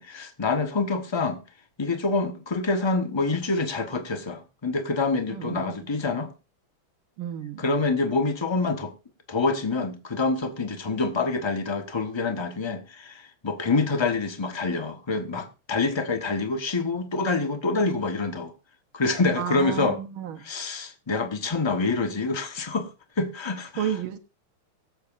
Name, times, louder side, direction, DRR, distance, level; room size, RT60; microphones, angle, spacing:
voice 1, 0.0-1.4 1.8-6.3 7.6-8.9 9.3-18.5 18.9-20.0 20.4-22.9 23.2-23.9, left 3 dB, 20° left, 0.8 m, -26 dB
voice 2, 5.3-5.9 7.2-7.6 19.4-20.4 23.8-24.2, right 10 dB, 75° right, 1.8 m, -31 dB
23.0 x 7.9 x 2.6 m
omnidirectional pair, 2.4 m